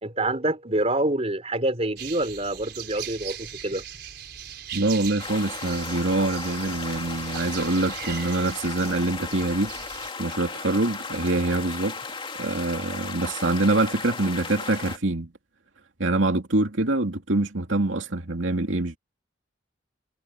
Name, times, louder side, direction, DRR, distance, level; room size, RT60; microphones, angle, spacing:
voice 1, 0.0-3.8, right 1 dB, 35° right, 4.2 m, -26 dB
sound 1, 2.0-10.1, right 9 dB, 55° right, 5.6 m, -39 dB
voice 2, 4.7-9.7 10.2-12.0 12.4-15.3 16.0-19.0, right 2 dB, 75° right, 2.6 m, -25 dB
sound 2, 5.2-15.0, left 4 dB, 25° left, 2.5 m, -36 dB
head